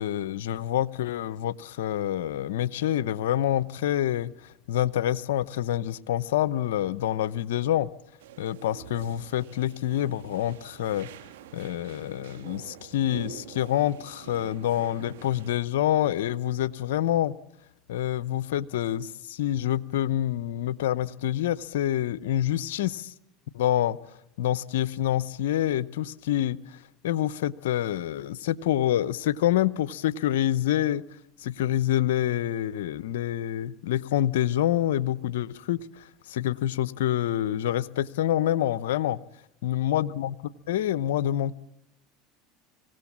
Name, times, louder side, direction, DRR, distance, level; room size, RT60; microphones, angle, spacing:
voice 1, 0.0-7.9 8.4-11.1 11.5-17.3 17.9-23.1 23.5-24.0 24.4-26.8 27.0-31.0 31.4-39.2 39.6-40.4 40.7-41.6, left 12 dB, 80° left, 0.7 m, -27 dB
sound 1, 8.2-15.6, right 9 dB, 80° right, 2.0 m, -46 dB
25.0 x 17.0 x 7.3 m
hypercardioid pair, 95°, 0 cm